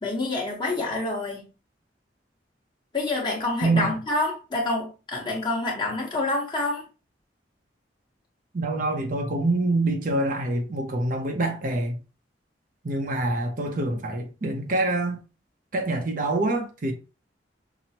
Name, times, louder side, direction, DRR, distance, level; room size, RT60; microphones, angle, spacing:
voice 1, 0.0-1.4 2.9-6.8, left 2 dB, 25° left, 1.1 m, -27 dB
voice 2, 3.6-3.9 8.5-12.0 12.8-15.2 15.7-16.9, right 2 dB, 50° right, 0.6 m, -25 dB
5.9 x 2.1 x 2.8 m
head